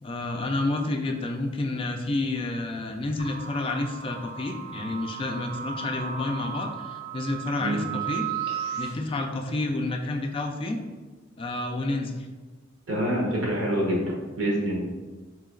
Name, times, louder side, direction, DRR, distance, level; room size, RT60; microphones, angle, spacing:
voice 1, 0.0-8.3 8.8-10.8 11.4-12.2, left 2 dB, 30° left, 3 dB, 0.3 m, -29 dB
sound 1, 3.2-8.9, right 8 dB, 55° right, 1.1 m, -35 dB
voice 2, 12.9-14.0 14.4-14.8, right 1 dB, 80° right, -3 dB, 1.1 m, -26 dB
3.1 x 2.9 x 3.7 m, 1.3 s
head